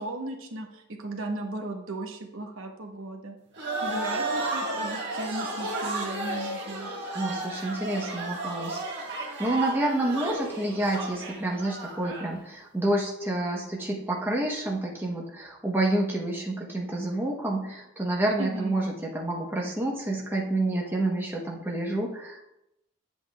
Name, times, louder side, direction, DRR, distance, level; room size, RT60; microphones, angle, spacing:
voice 1, 0.0-3.4 3.8-6.9 18.4-18.7, right 2 dB, 70° right, 2 dB, 1.1 m, -36 dB
sound 1, 3.6-12.3, right 2 dB, 55° right, 1.6 m, -33 dB
voice 2, 7.1-8.8 9.4-22.4, right 1 dB, 10° right, -2 dB, 0.9 m, -28 dB
9.3 x 7.9 x 2.3 m, 0.85 s
head